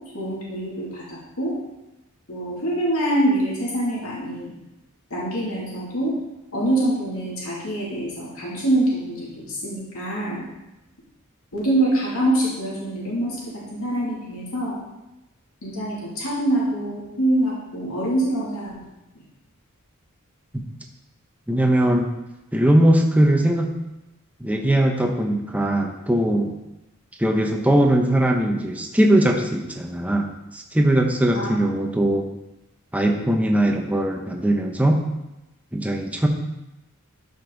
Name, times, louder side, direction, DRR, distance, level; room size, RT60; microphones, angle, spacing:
voice 1, 0.1-1.5 2.3-4.5 5.1-6.1 6.5-10.4 11.5-13.4 13.7-14.8 15.6-18.8 31.3-31.5, right 1 dB, 80° left, -6 dB, 2.8 m, -25 dB
voice 2, 21.5-22.1 22.5-23.7 24.4-26.5 27.2-32.2 32.9-35.0 35.7-36.3, right 1 dB, 5° right, 2 dB, 0.9 m, -20 dB
12.5 x 5.4 x 4.0 m, 0.95 s
head